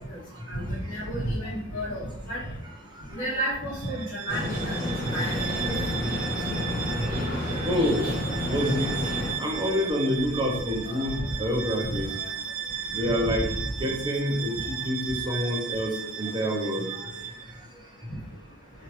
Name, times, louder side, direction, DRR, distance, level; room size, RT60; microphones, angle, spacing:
voice 1, 0.5-2.5 3.1-4.8 5.1-5.6 6.4-6.5 9.5-9.7 10.8-11.4 11.9-12.2 12.9-13.3 14.5-14.6 16.4-16.5, equal, 55° left, -12 dB, 1.1 m, -32 dB
voice 2, 2.4-3.2 5.4-5.5 6.8-7.0 7.6-8.0 8.5-12.1 12.9-13.5 13.8-17.1, equal, 20° right, 0 dB, 0.5 m, -28 dB
Bowed string instrument, 3.7-17.6, right 7 dB, 70° right, 0.4 m, -36 dB
sound 1, 4.3-9.3, left 1 dB, 40° left, 1.4 m, -29 dB
2.9 x 2.4 x 3.0 m, 0.74 s
head